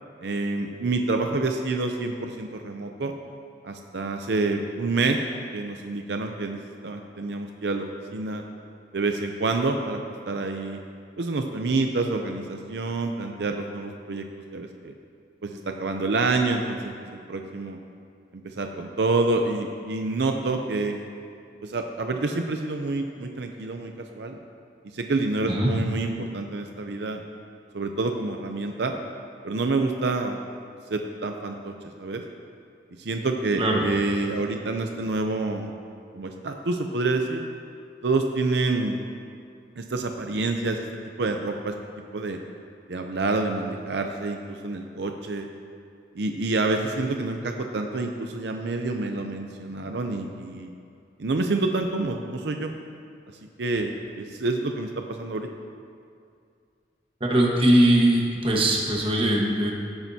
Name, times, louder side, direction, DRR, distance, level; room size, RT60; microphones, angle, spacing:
voice 1, 0.2-3.1 3.6-5.2 5.5-6.6 6.8-8.4 8.9-10.0 10.3-10.8 11.2-14.2 14.5-14.9 15.4-17.8 18.3-21.1 21.6-24.4 24.9-27.2 27.7-28.9 29.4-30.4 30.9-32.2 33.0-35.7 36.1-37.4 38.0-39.0 39.8-40.9 41.2-41.7 42.1-42.4 42.9-45.5 46.2-50.7 51.2-52.7 53.6-55.5, right 3 dB, 75° right, 4 dB, 0.6 m, -27 dB
voice 2, 57.2-59.7, right 1 dB, 30° right, -1 dB, 1.3 m, -20 dB
16.0 x 8.8 x 2.8 m, 2.3 s
head